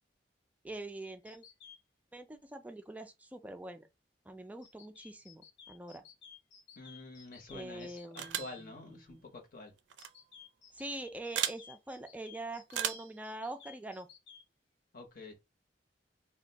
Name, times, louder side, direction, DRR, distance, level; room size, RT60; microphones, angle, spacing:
voice 1, 0.6-1.4 2.1-3.9 4.3-6.0 7.5-9.2 10.7-14.1, right 2 dB, 10° right, 0.3 m, -44 dB
sound 1, 1.3-1.8 4.6-8.3 10.0-14.4, left 7 dB, 90° left, 0.8 m, -55 dB
voice 2, 6.8-9.7 14.9-15.3, left 3 dB, 50° left, 0.9 m, -48 dB
sound 2, 8.2-8.6 9.9-10.1 11.3-11.6 12.7-13.1, right 10 dB, 80° right, 0.4 m, -35 dB
2.5 x 2.2 x 3.9 m
head